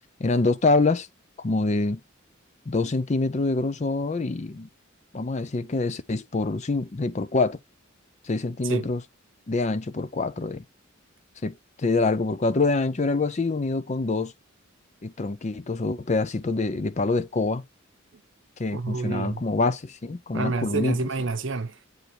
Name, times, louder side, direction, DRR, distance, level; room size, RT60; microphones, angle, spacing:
voice 1, 0.2-1.1 1.4-2.0 2.7-4.7 5.1-7.6 8.2-9.0 9.5-10.6 11.4-14.3 15.0-17.6 18.6-21.0, left 3 dB, 35° left, 0.5 m, -25 dB
voice 2, 18.7-19.4 20.3-21.9, right 3 dB, 60° right, 0.8 m, -28 dB
7.9 x 4.3 x 3.2 m
head